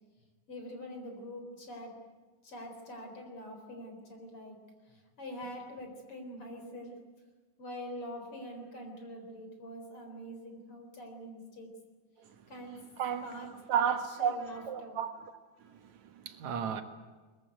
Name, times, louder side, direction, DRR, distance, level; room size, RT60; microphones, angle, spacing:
voice 1, 0.5-2.0 2.4-7.0 7.6-11.7 12.5-12.8 13.2-13.8 14.2-15.0, equal, 45° left, 4.9 m, -44 dB
voice 2, 13.0-13.3 13.7-15.3 15.6-16.8, right 8 dB, 70° right, 2.9 m, -33 dB
22.5 x 21.0 x 9.4 m
omnidirectional pair, 3.4 m